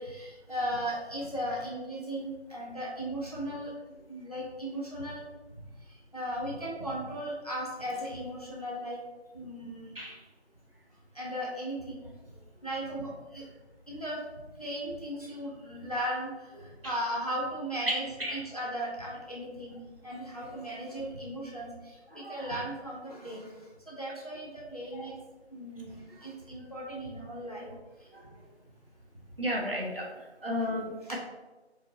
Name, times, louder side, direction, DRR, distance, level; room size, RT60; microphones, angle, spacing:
voice 1, 0.0-5.2 5.8-9.0 9.3-9.9 11.1-12.4 12.6-13.4 13.9-14.2 14.6-25.2 25.5-27.7 28.0-28.1 31.0-31.2, equal, 35° left, -4 dB, 0.8 m, -37 dB
voice 2, 17.9-18.4 22.1-22.5 24.9-25.0 28.1-28.2 29.4-30.1 30.4-31.2, equal, 55° right, -2 dB, 1.1 m, -33 dB
4.5 x 2.5 x 4.0 m, 1.2 s
figure-of-eight pair, 180°, 34 cm